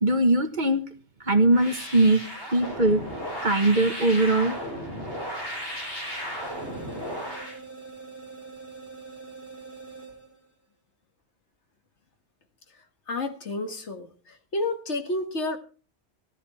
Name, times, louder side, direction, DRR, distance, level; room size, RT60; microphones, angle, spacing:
voice 1, 0.0-0.8 1.3-2.2 2.5-3.0 3.4-4.5, right 2 dB, 40° right, 7 dB, 1.6 m, -21 dB
sound 1, 1.5-7.6, equal, 55° left, 7.3 m, -35 dB
sound 2, 6.4-10.5, right 4 dB, 15° left, 6.3 m, -44 dB
voice 2, 13.1-15.6, left 2 dB, 75° left, 7 dB, 2.1 m, -30 dB
15.0 x 13.5 x 4.3 m, 0.37 s
omnidirectional pair, 1.2 m